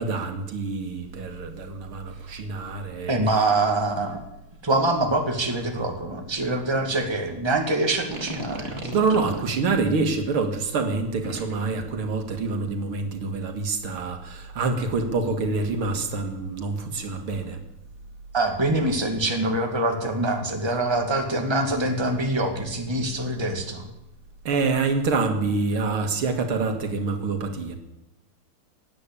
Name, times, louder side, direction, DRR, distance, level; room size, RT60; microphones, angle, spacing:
voice 1, 0.0-3.1 8.9-17.6 24.5-27.7, right 4 dB, 75° right, 6 dB, 2.6 m, -26 dB
voice 2, 3.1-4.2 4.6-9.0 18.3-23.9, right 2 dB, 10° right, 3 dB, 2.0 m, -24 dB
sound 1, 7.9-9.5 11.2-11.7, right 2 dB, 30° right, 2.4 m, -36 dB
17.0 x 9.7 x 8.6 m, 0.91 s
omnidirectional pair, 2.4 m